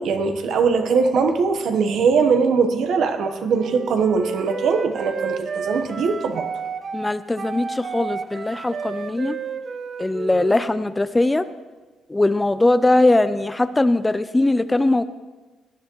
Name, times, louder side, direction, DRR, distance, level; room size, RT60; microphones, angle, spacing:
voice 1, 0.0-6.5, right 5 dB, 70° right, 7 dB, 1.1 m, -21 dB
Wind instrument woodwind instrument, 3.5-11.0, right 5 dB, 45° right, 0.7 m, -31 dB
voice 2, 6.9-9.4 10.0-11.5 12.1-15.0, left 2 dB, 15° left, 13 dB, 0.5 m, -20 dB
18.5 x 10.5 x 3.1 m, 1.2 s
cardioid pair, 90°, 0 cm